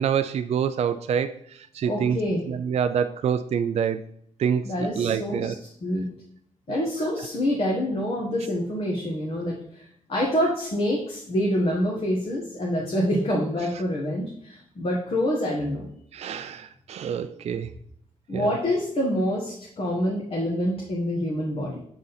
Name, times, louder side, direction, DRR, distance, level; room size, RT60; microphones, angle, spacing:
voice 1, 0.0-1.3 1.8-2.2 2.5-4.0 4.4-4.6 5.0-5.5 16.1-17.7 18.3-18.5, right 8 dB, 55° right, 9 dB, 0.4 m, -26 dB
voice 2, 1.8-2.4 4.6-6.1 6.7-15.8 18.3-21.8, equal, 45° left, -3 dB, 1.4 m, -26 dB
7.1 x 3.8 x 4.0 m, 0.68 s
cardioid pair, 110°, 13 cm